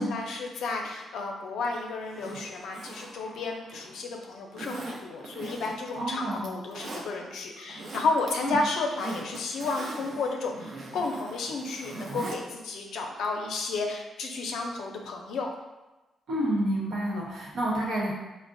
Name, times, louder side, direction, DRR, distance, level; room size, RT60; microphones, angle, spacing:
voice 1, 0.0-15.5, left 3 dB, 80° left, 1 dB, 0.5 m, -32 dB
Zipper (clothing), 2.0-4.0 4.5-5.9 6.3-7.0 7.6-8.3 8.6-12.4 12.7-12.8, right 2 dB, 50° right, 0.5 m, -40 dB
voice 2, 6.0-6.5 8.4-8.6 16.3-18.1, right 1 dB, 80° right, -4 dB, 1.0 m, -29 dB
4.7 x 2.0 x 2.5 m, 1.1 s
cardioid pair, 155°, 0 cm